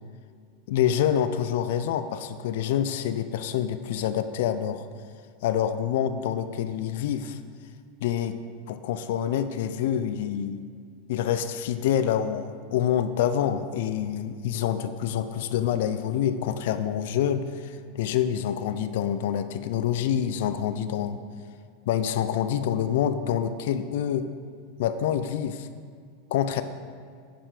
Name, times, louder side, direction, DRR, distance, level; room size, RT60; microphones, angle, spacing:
voice 1, 0.7-4.9 5.4-7.4 8.0-8.4 8.7-10.6 11.1-21.2 21.9-24.3 24.8-25.7 26.3-26.6, left 9 dB, 70° left, 10 dB, 0.4 m, -27 dB
7.5 x 5.6 x 4.9 m, 2.1 s
supercardioid pair, 120°, 0 cm